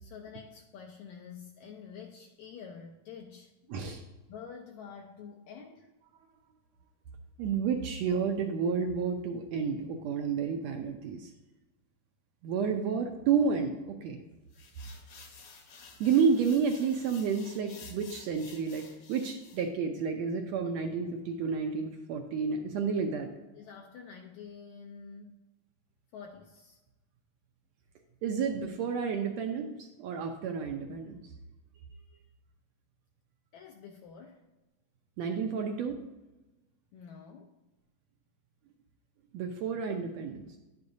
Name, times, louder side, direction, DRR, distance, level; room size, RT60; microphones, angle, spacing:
voice 1, 0.0-3.5 4.3-5.9 23.5-25.4 26.1-26.8 33.5-34.5 36.9-37.6, left 6 dB, 80° left, 2 dB, 1.8 m, -48 dB
voice 2, 3.7-4.0 7.4-11.3 12.4-14.2 16.0-23.3 28.2-31.2 35.2-36.0 39.3-40.5, right 6 dB, 80° right, 4 dB, 1.6 m, -30 dB
sound 1, 14.5-19.7, left 5 dB, 60° left, 1.6 m, -52 dB
10.5 x 8.3 x 2.7 m, 1.1 s
omnidirectional pair, 3.7 m